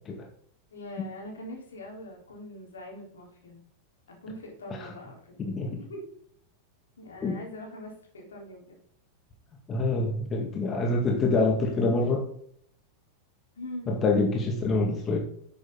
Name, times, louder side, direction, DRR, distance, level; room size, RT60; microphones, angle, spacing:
voice 1, 0.7-3.6 4.1-6.0 7.0-8.6 13.5-14.0, left 1 dB, 70° left, -1 dB, 4.1 m, -42 dB
voice 2, 5.4-5.7 7.2-7.4 9.7-12.3 13.9-15.2, left 3 dB, 25° left, 2 dB, 2.0 m, -26 dB
11.0 x 8.3 x 4.0 m, 0.63 s
figure-of-eight pair, 90°, 0 cm